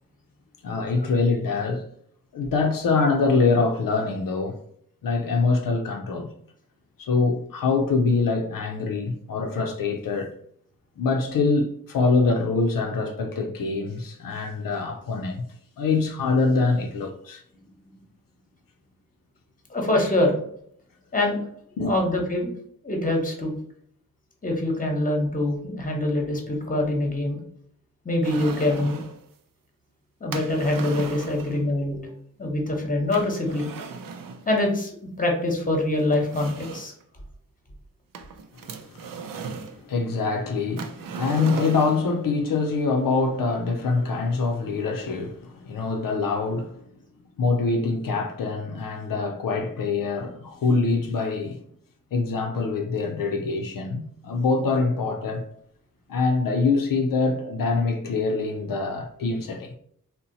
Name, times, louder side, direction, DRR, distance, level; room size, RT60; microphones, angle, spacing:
voice 1, 0.6-1.8 2.3-4.6 5.0-6.3 7.0-10.3 11.0-15.4 15.8-17.4 21.8-21.9 38.5-39.4 39.8-46.7 47.4-51.6 52.1-55.4 56.1-59.8, left 4 dB, 80° left, 0.5 m, -24 dB
voice 2, 19.7-20.4 21.1-21.5 21.8-22.5 22.8-23.5 24.4-27.4 28.0-29.0 30.2-32.1 32.4-33.7 34.5-34.9 35.2-36.9, left 1 dB, 25° left, 0.9 m, -24 dB
sound 1, 28.2-29.2 30.3-31.6 33.1-34.4 35.5-35.6 36.1-37.0 38.1-39.8 40.8-42.1, right 5 dB, 80° right, 0.5 m, -36 dB
2.7 x 2.1 x 3.9 m
wide cardioid pair, 85°, 33 cm